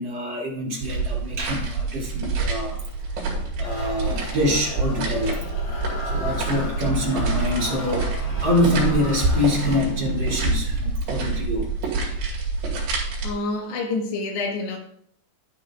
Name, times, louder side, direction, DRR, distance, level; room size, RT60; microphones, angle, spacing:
voice 1, 0.0-3.2 3.6-5.5 6.0-11.7, left 1 dB, 30° right, 2.7 m, -25 dB
sound 1, 0.8-13.3, right 3 dB, 85° right, 4.5 m, -27 dB
sound 2, 3.6-10.3, left 2 dB, 60° left, 5.1 m, -36 dB
voice 2, 13.2-14.8, left 3 dB, 85° left, 3.6 m, -27 dB
11.0 x 9.9 x 2.4 m
omnidirectional pair, 4.8 m